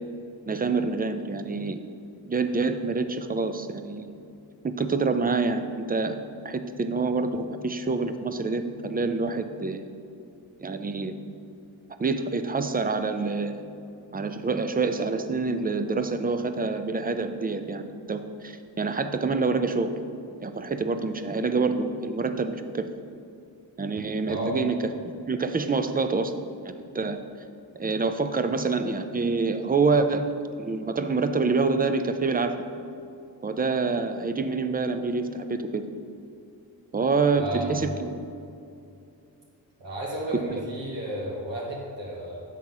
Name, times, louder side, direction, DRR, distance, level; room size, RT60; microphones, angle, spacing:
voice 1, 0.5-1.8 2.2-4.1 4.6-6.2 6.4-9.9 10.6-11.2 12.0-13.6 14.1-19.9 20.4-22.9 23.8-26.3 26.6-27.2 27.8-30.3 30.6-32.6 33.4-35.8 36.9-38.2 40.3-40.6, right 4 dB, 20° right, 9 dB, 0.5 m, -27 dB
voice 2, 24.3-24.6 37.3-37.9 39.8-42.4, right 1 dB, 75° right, -5 dB, 1.6 m, -33 dB
7.5 x 3.8 x 5.9 m, 2.6 s
cardioid pair, 50°, 44 cm